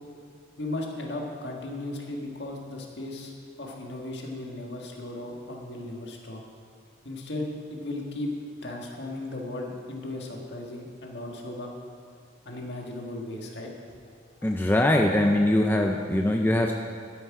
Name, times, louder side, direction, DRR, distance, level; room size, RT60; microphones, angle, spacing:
voice 1, 0.6-3.3 3.6-6.4 7.0-8.3 8.6-11.7 12.5-13.7 14.4-14.5, left 2 dB, 60° left, 0 dB, 1.7 m, -36 dB
voice 2, 14.4-16.7, left 1 dB, 10° left, 2 dB, 0.5 m, -22 dB
12.5 x 9.8 x 4.8 m, 2.1 s
head